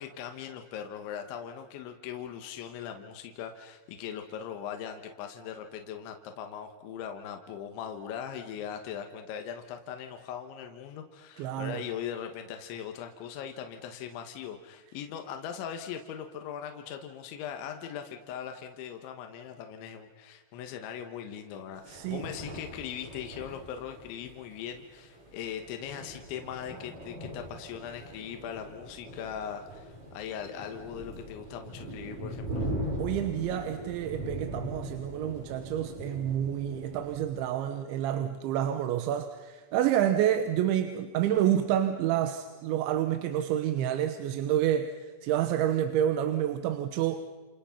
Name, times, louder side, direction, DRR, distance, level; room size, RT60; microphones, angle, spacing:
voice 1, 0.0-32.7, left 8 dB, 75° left, 5 dB, 3.6 m, -40 dB
voice 2, 11.4-11.8 21.9-22.2 33.0-47.2, right 11 dB, 80° right, 8 dB, 3.4 m, -28 dB
sound 1, 21.7-37.3, equal, 40° right, 7.5 m, -40 dB
29.0 x 29.0 x 5.8 m, 1.3 s
omnidirectional pair, 5.4 m